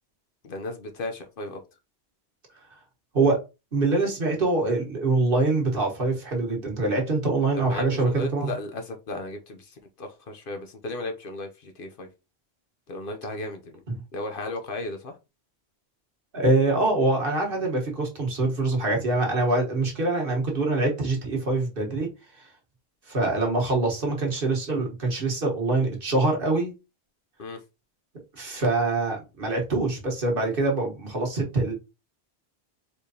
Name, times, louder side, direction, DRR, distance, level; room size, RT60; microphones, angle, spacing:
voice 1, 0.4-1.6 7.6-12.1 12.9-13.8 14.1-15.2 27.4-27.6, left 2 dB, 60° left, 0.9 m, -35 dB
voice 2, 3.7-8.5 13.9-14.0 16.3-22.1 22.4-22.5 23.1-26.7 28.4-31.7, right 2 dB, 60° right, 1.5 m, -24 dB
4.4 x 3.2 x 2.8 m
omnidirectional pair, 1.1 m